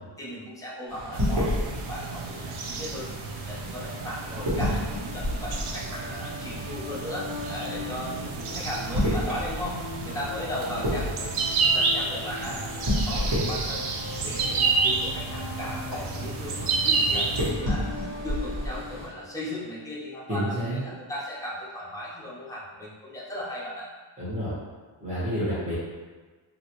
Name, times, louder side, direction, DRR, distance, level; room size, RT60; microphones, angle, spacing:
voice 1, 0.2-3.1 3.5-11.4 11.7-13.8 14.2-17.9 18.2-23.9, left 1 dB, 5° left, -7 dB, 0.7 m, -37 dB
sound 1, 0.9-19.1, equal, 65° right, 1.3 m, -32 dB
sound 2, 1.1-17.5, right 4 dB, 85° right, 0.6 m, -30 dB
sound 3, 4.2-19.6, left 4 dB, 45° left, 0.5 m, -42 dB
voice 2, 20.3-20.8 24.2-24.5 25.0-25.7, equal, 15° right, -13 dB, 1.4 m, -29 dB
3.0 x 2.6 x 2.9 m, 1.3 s
wide cardioid pair, 135°, 48 cm